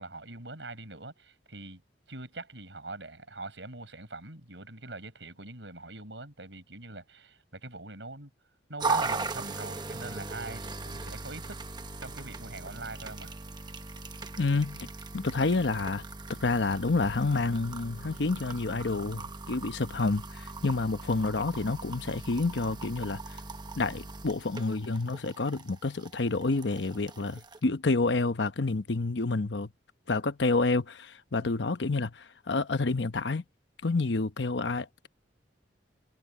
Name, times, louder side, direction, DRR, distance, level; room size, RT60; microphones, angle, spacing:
voice 1, 0.0-1.8 2.1-8.3 8.7-11.6 12.0-13.3 27.3-27.4 31.4-31.6, right 2 dB, 90° right, 7.3 m, -43 dB
sound 1, 8.8-27.6, right 4 dB, 25° right, 1.1 m, -39 dB
voice 2, 14.4-16.0 16.4-23.2 23.8-29.7 30.1-33.4 33.8-35.1, left 3 dB, 80° left, 0.9 m, -29 dB
head